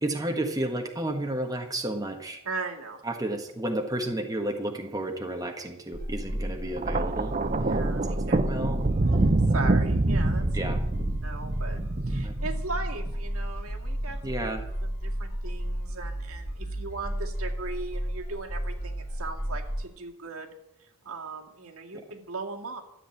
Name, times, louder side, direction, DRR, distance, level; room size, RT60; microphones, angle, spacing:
voice 1, 0.0-2.4 3.0-7.4 8.0-8.8 10.5-10.8 12.2-12.4 14.2-14.6, right 1 dB, 15° right, 3 dB, 1.4 m, -32 dB
voice 2, 2.4-3.0 7.7-8.4 9.1-10.5 11.2-14.2 14.8-20.5 20.8-22.8, right 3 dB, 75° right, 2 dB, 2.2 m, -38 dB
sound 1, 5.9-19.8, equal, 30° left, 5.9 m, -33 dB
Thunder, 6.8-13.1 14.1-14.4, right 2 dB, 35° right, 0.7 m, -26 dB
13.5 x 7.9 x 9.0 m, 0.84 s
head